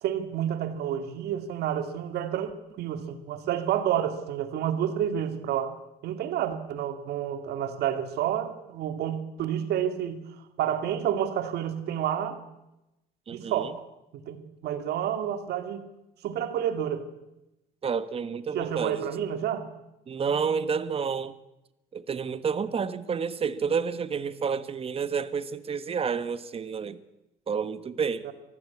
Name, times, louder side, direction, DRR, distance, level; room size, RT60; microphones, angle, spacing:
voice 1, 0.0-2.5 2.8-5.7 6.0-10.2 10.6-12.4 13.3-13.9 14.1-15.9 16.2-17.0 18.5-19.7 28.2-28.3, right 10 dB, 75° right, 2.3 m, -29 dB
voice 2, 13.3-13.7 17.8-19.2 20.1-21.3 21.9-27.0 27.5-28.3, right 6 dB, 35° right, 1.3 m, -30 dB
23.5 x 15.0 x 8.5 m
cardioid pair, 110°, 17 cm